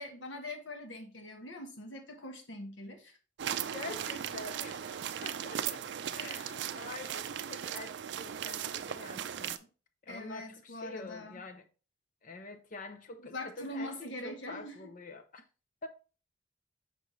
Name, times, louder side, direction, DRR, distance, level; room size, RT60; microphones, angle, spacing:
voice 1, 0.0-3.2 10.1-11.4 13.3-14.9, left 1 dB, 75° left, 1.2 m, -43 dB
sound 1, 3.4-9.6, right 9 dB, 65° right, 0.4 m, -37 dB
voice 2, 3.6-5.8 6.1-9.7 10.0-11.6 12.2-15.4 15.8-15.9, left 3 dB, 45° left, 0.6 m, -46 dB
5.9 x 5.3 x 3.1 m
head